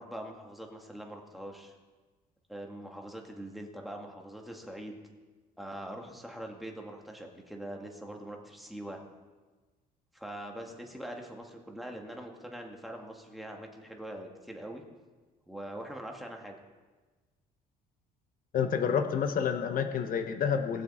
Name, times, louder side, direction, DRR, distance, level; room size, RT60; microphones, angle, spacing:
voice 1, 0.0-1.7 2.5-5.0 5.6-9.0 10.1-14.8 15.5-16.6, right 1 dB, ahead, 1 dB, 2.0 m, -43 dB
voice 2, 18.5-20.8, left 7 dB, 55° left, 7 dB, 1.0 m, -29 dB
19.0 x 7.4 x 4.3 m, 1.3 s
cardioid pair, 110°, 17 cm